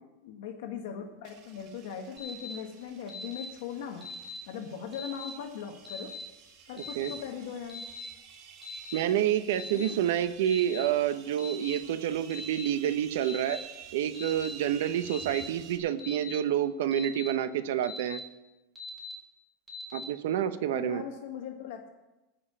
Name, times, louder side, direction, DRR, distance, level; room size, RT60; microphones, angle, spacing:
voice 1, 0.2-4.1 4.5-6.1 6.7-7.8 9.5-10.0 20.7-21.9, left 7 dB, 65° left, 3 dB, 1.5 m, -39 dB
sound 1, 1.2-15.8, right 6 dB, 45° right, 1.7 m, -51 dB
Alarm, 2.2-2.5 3.1-3.4 4.0-4.4 4.9-5.3 5.8-6.2 6.8-7.1 7.7-8.1 8.6-9.0 9.5-9.9 10.5-10.8 11.4-11.7 12.3-12.7 13.2-13.6 14.1-14.5 15.1-15.4 16.0-16.3 16.9-17.3 17.8-18.2 18.8-19.1 19.7-20.0, left 5 dB, 5° right, 3.5 m, -41 dB
voice 2, 8.9-13.6 13.9-18.2 19.9-21.0, right 10 dB, 75° right, 12 dB, 0.9 m, -28 dB
16.5 x 5.6 x 8.5 m, 1.0 s
supercardioid pair, 160°, 0 cm